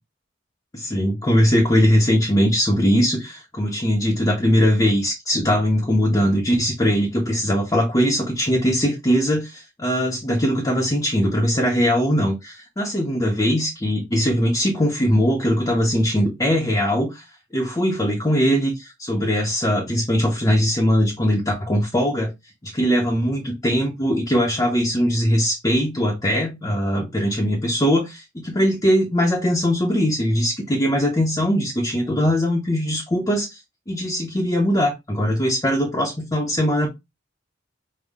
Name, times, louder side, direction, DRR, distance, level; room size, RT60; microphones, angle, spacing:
voice 1, 0.7-17.3 17.5-22.3 22.6-33.6 33.9-36.9, equal, 20° left, 0.8 m, -20 dB
5.5 x 2.2 x 3.5 m
head